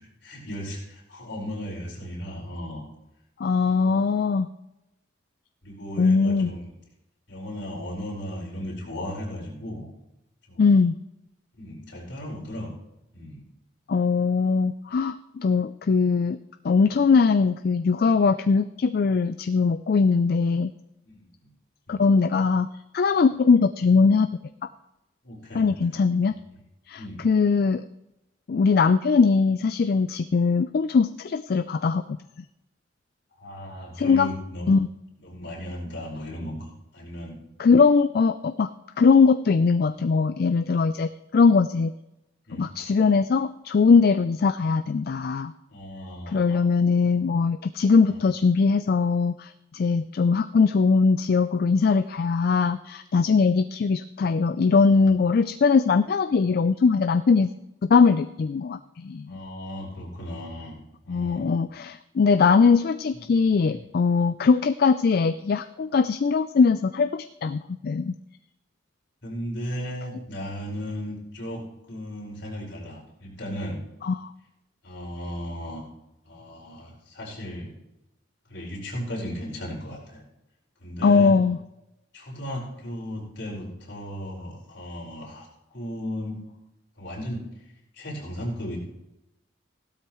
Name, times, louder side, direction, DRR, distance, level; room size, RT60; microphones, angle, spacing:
voice 1, 0.0-2.8 3.6-3.8 5.6-6.7 7.3-9.9 10.5-10.8 11.5-12.7 13.1-13.4 16.8-16.9 21.0-21.3 21.9-22.1 25.2-25.8 26.5-26.6 27.0-27.2 33.4-34.7 35.2-36.7 36.9-37.4 42.5-42.7 45.7-46.6 48.1-48.2 54.8-55.1 59.3-60.8 61.0-61.5 63.7-63.8 69.2-71.6 71.9-73.8 74.8-75.8 76.2-77.7 78.5-80.2 80.8-81.3 82.1-85.5 85.7-86.4 87.0-87.4 87.9-88.8, equal, 65° left, -4 dB, 4.9 m, -36 dB
voice 2, 3.4-4.5 6.0-6.5 10.6-11.0 13.9-16.4 16.6-20.7 21.9-22.7 22.9-24.3 25.5-26.3 26.9-27.8 28.5-32.0 34.0-34.3 34.7-34.9 37.6-38.7 39.0-41.9 42.6-45.5 46.3-57.5 57.8-59.4 61.1-68.1 74.0-74.2 81.0-81.6, left 5 dB, 50° left, 12 dB, 0.3 m, -21 dB
16.0 x 12.5 x 3.1 m, 0.92 s
head